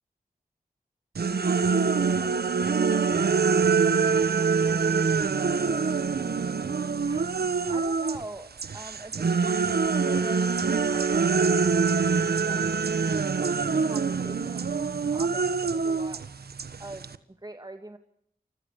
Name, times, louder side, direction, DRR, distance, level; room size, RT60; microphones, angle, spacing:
sound 1, 1.2-8.2 8.6-17.2, right 5 dB, 80° right, 1.4 m, -25 dB
voice 1, 1.4-4.8, right 3 dB, 60° right, 5 dB, 5.3 m, -45 dB
voice 2, 7.1-8.5 8.7-9.2 9.7-11.1 12.5-12.9 13.8-16.2 16.8-17.1 17.4-18.0, right 1 dB, 25° right, 7 dB, 2.3 m, -43 dB
30.0 x 24.5 x 6.7 m, 0.72 s
cardioid pair, 45°, 16 cm